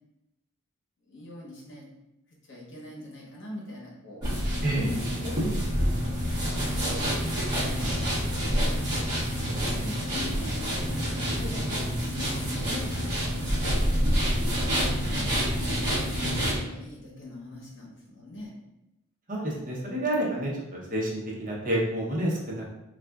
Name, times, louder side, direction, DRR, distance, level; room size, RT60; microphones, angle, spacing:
voice 1, 1.0-1.9 2.3-4.2 4.8-7.2 7.6-9.4 9.8-14.0 14.4-18.5, left 1 dB, 60° left, -3 dB, 1.0 m, -42 dB
sound 1, 4.2-16.6, equal, 20° right, 1.0 m, -27 dB
voice 2, 19.3-22.6, right 1 dB, 40° right, -3 dB, 0.8 m, -29 dB
4.2 x 2.4 x 2.3 m, 0.90 s
head